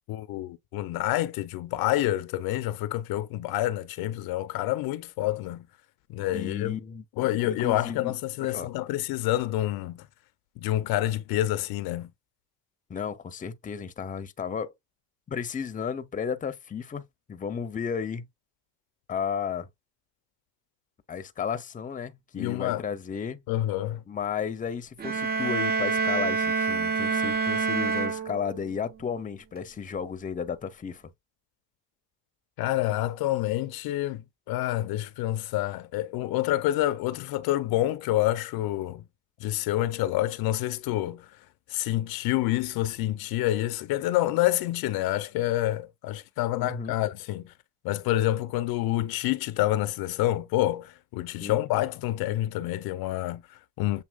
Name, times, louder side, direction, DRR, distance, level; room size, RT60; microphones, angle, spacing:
voice 1, 0.1-5.7 6.1-6.8 7.2-10.1 10.6-12.1 22.4-22.8 23.5-24.0 32.6-34.2 34.5-39.0 39.4-41.3 41.7-47.5 47.8-54.0, left 14 dB, 60° left, 0.6 m, -28 dB
voice 2, 6.3-7.0 7.4-8.1 8.4-8.7 12.9-14.7 15.3-17.0 17.3-18.3 19.1-19.7 21.1-23.4 24.1-31.0 46.6-47.0 51.4-51.6, left 7 dB, 20° left, 0.7 m, -33 dB
sound 1, 25.0-28.8, right 4 dB, 25° right, 0.4 m, -27 dB
7.3 x 2.8 x 2.3 m
supercardioid pair, 95°, 41 cm